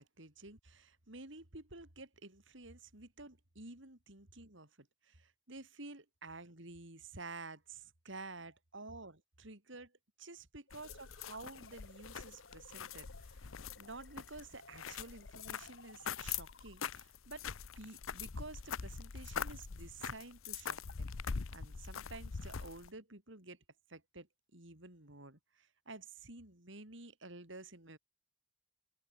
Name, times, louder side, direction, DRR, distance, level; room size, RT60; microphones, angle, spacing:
voice 1, 0.0-9.9 10.2-13.5 13.8-17.4 17.8-23.6 23.9-24.3 24.5-28.0, right 3 dB, 65° right, 3.8 m, -51 dB
sound 1, 10.7-22.9, left 6 dB, 85° left, 0.8 m, -43 dB
sound 2, 10.7-17.2, left 3 dB, 60° left, 5.5 m, -59 dB
head